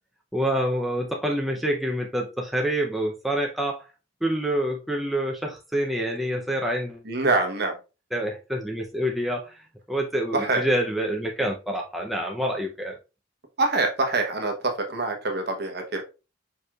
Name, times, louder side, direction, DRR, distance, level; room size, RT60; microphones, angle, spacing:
voice 1, 0.3-3.9 4.2-7.0 8.1-9.6 9.9-13.0, right 1 dB, ahead, 0 dB, 0.5 m, -27 dB
voice 2, 7.1-7.7 10.3-10.6 13.6-16.0, right 3 dB, 55° right, 4 dB, 0.9 m, -25 dB
4.8 x 4.7 x 2.3 m, 0.29 s
head